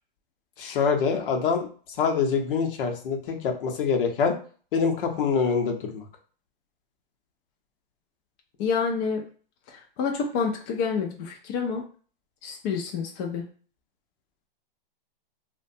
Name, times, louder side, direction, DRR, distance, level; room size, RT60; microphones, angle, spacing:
voice 1, 0.6-1.7 2.0-4.3 4.7-6.0, left 5 dB, 65° left, 3 dB, 0.8 m, -25 dB
voice 2, 8.6-9.2 10.0-11.8 12.4-13.4, left 5 dB, 30° left, 1 dB, 0.4 m, -28 dB
2.5 x 2.2 x 2.6 m, 0.41 s
hypercardioid pair, 130°, 29 cm